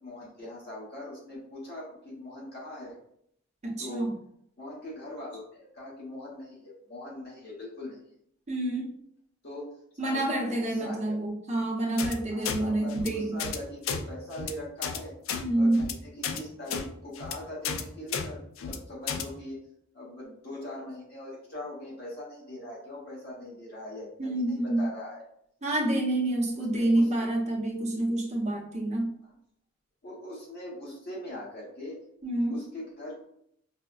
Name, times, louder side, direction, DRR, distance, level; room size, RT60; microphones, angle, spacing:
voice 1, 0.0-3.0 3.8-4.1 4.6-8.0 9.4-9.7 10.0-11.1 12.3-15.1 15.5-19.6 19.9-25.2 26.6-27.1 30.0-32.0 32.5-33.3, left 1 dB, 55° left, -5 dB, 1.1 m, -41 dB
voice 2, 3.6-4.1 8.5-8.9 10.0-13.4 15.4-15.8 24.2-24.9 25.6-29.1 32.2-32.7, right 1 dB, 35° right, -2 dB, 0.8 m, -28 dB
sound 1, 12.0-12.1 12.4-12.6 12.9-13.1 13.4-13.6 13.8-14.0 14.3-14.5 14.8-15.0 15.3-15.4 15.7-15.9 16.2-16.4 16.7-16.8 17.1-17.3 17.6-17.8 18.1-18.3 18.6-18.8 19.1-19.2, left 7 dB, 80° left, 0.4 m, -32 dB
4.9 x 2.1 x 2.4 m, 0.72 s
head